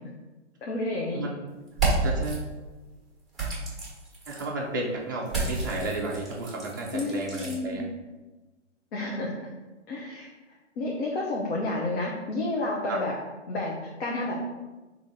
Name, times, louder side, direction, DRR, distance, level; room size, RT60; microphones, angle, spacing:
voice 1, 0.6-1.2 6.9-7.8 8.9-9.4 9.9-10.3 10.8-13.1 13.5-14.3, left 2 dB, 60° left, -3 dB, 0.9 m, -30 dB
sound 1, 1.7-2.4 3.3-4.5 5.3-7.6, right 3 dB, ahead, 1.1 m, -30 dB
voice 2, 2.0-2.5 4.3-7.8 12.9-13.0, right 2 dB, 20° right, -3 dB, 0.3 m, -32 dB
3.8 x 2.9 x 4.1 m, 1.2 s
hypercardioid pair, 145°, 36 cm